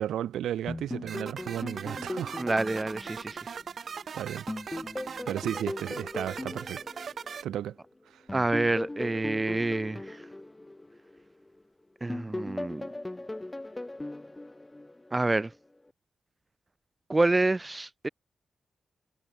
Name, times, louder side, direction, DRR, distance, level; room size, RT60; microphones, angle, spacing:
voice 1, 0.0-2.4 3.4-3.6 4.1-4.5 5.3-6.9 7.4-7.8 8.1-8.2, right 11 dB, 85° right, 2.4 m, -34 dB
sound 1, 0.7-4.0 4.5-7.7 8.3-11.6 12.1-15.3, left 2 dB, 20° left, 2.3 m, -39 dB
sound 2, 1.1-7.4, right 6 dB, 65° right, 3.6 m, -40 dB
voice 2, 2.4-3.4 8.3-10.2 12.0-12.8 15.1-15.5 17.1-18.1, right 2 dB, 25° right, 1.1 m, -27 dB
supercardioid pair, 45°, 0 cm